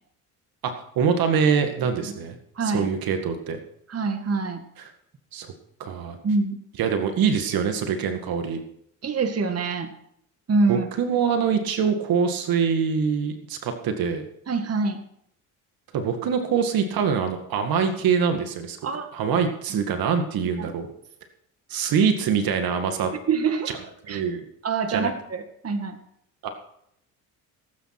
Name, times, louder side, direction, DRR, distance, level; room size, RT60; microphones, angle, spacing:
voice 1, 0.6-2.4 2.6-3.6 4.8-4.9 5.3-5.5 5.8-6.2 6.8-8.6 10.7-14.3 15.9-18.8 19.1-20.9 21.7-23.1 24.1-24.4 24.9-25.1 26.4-26.5, right 6 dB, 65° right, 6 dB, 2.1 m, -24 dB
voice 2, 2.6-2.9 3.9-4.6 6.2-6.6 9.0-9.9 10.5-10.9 14.5-15.0 18.8-19.1 19.7-19.8 20.6-20.7 23.3-23.7 24.1-24.2 24.6-26.0, right 4 dB, 40° right, 6 dB, 2.1 m, -25 dB
17.5 x 9.2 x 6.0 m, 0.73 s
supercardioid pair, 75°, 38 cm